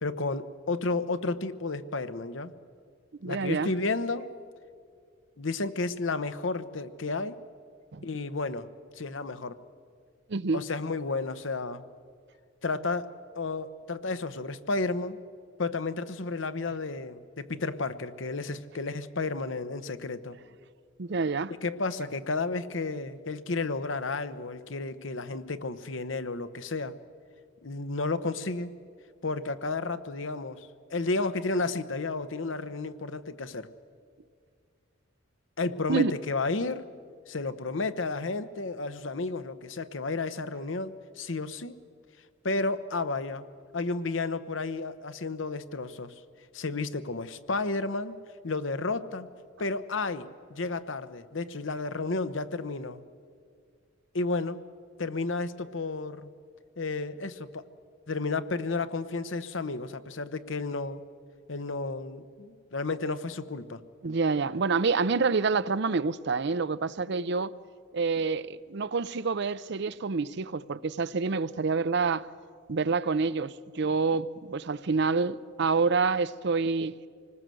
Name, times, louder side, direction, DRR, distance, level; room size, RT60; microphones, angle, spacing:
voice 1, 0.0-2.5 3.2-4.3 5.4-7.4 8.0-8.7 9.0-9.6 10.5-11.8 12.6-15.2 15.6-20.4 21.6-27.0 27.6-28.7 29.2-33.7 35.6-36.9 37.3-41.8 42.4-43.4 43.7-46.1 46.5-48.2 48.4-49.3 49.6-53.0 54.1-54.6 55.0-56.3 56.8-57.6 58.1-61.0 61.5-63.8, left 3 dB, 75° left, 1.0 m, -32 dB
voice 2, 3.2-3.7 7.9-8.0 10.3-10.6 21.0-21.5 35.9-36.1 64.0-67.5 67.9-72.3 72.7-77.0, right 4 dB, 60° right, 0.6 m, -27 dB
26.0 x 19.5 x 7.7 m
head